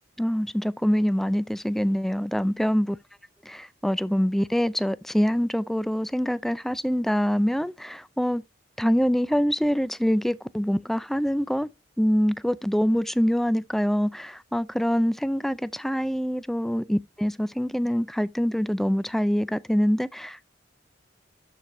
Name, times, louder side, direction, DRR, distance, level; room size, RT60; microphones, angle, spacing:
voice 1, 0.2-3.0 3.5-8.4 8.8-11.7 12.0-20.4, equal, ahead, 0.3 m, -25 dB
12.5 x 4.7 x 2.6 m
head